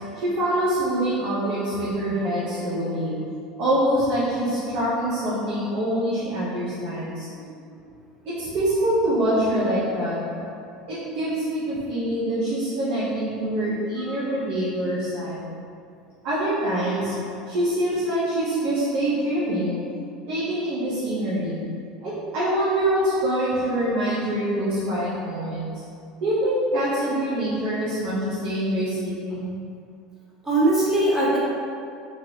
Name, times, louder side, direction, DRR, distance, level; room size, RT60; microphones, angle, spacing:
voice 1, 0.0-7.3 8.2-15.5 16.2-21.7 22.0-25.8 26.2-29.6, right 1 dB, 55° right, -9 dB, 0.8 m, -25 dB
voice 2, 7.3-7.8 14.1-14.2 30.4-31.4, right 1 dB, 15° right, -8 dB, 1.1 m, -22 dB
3.2 x 2.5 x 2.8 m, 2.3 s
hypercardioid pair, 80°, 3 cm